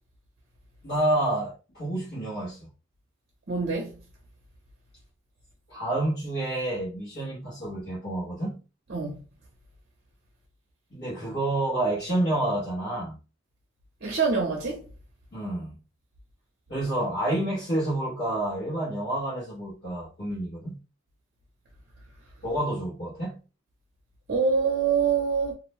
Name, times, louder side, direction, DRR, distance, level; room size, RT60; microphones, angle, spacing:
voice 1, 0.8-2.7 5.7-8.6 10.9-13.2 15.3-15.7 16.7-20.8 22.4-23.4, right 1 dB, 55° left, 1.1 m, -29 dB
voice 2, 3.5-3.9 8.9-9.2 14.0-14.8 24.3-25.5, right 5 dB, 55° right, 0.6 m, -25 dB
2.5 x 2.1 x 3.0 m
head